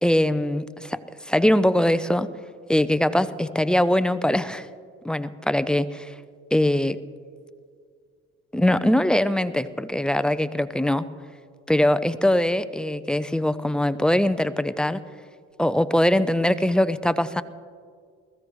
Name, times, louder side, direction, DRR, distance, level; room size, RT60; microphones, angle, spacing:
voice 1, 0.0-2.3 2.7-4.7 5.0-6.1 6.5-7.0 8.5-11.1 11.7-15.0 15.6-17.4, left 1 dB, 5° left, 13 dB, 0.5 m, -22 dB
21.0 x 14.5 x 3.2 m, 2.1 s
supercardioid pair, 70°, 29 cm